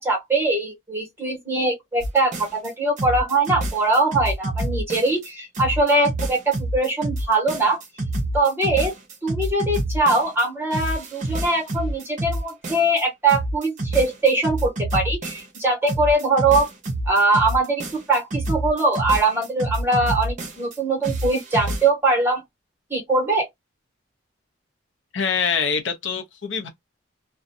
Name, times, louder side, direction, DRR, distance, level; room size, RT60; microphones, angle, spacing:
voice 1, 0.0-7.8 8.3-8.9 9.2-16.7 17.1-22.4 22.9-23.5, right 2 dB, 10° right, 1.2 m, -22 dB
sound 1, 2.0-2.7 3.0-5.3 5.5-10.4 10.7-13.0 13.3-15.6 15.9-20.8 21.0-21.9, right 1 dB, 40° right, 0.7 m, -27 dB
voice 2, 25.1-26.7, left 6 dB, 70° left, 0.7 m, -24 dB
2.5 x 2.2 x 2.6 m
head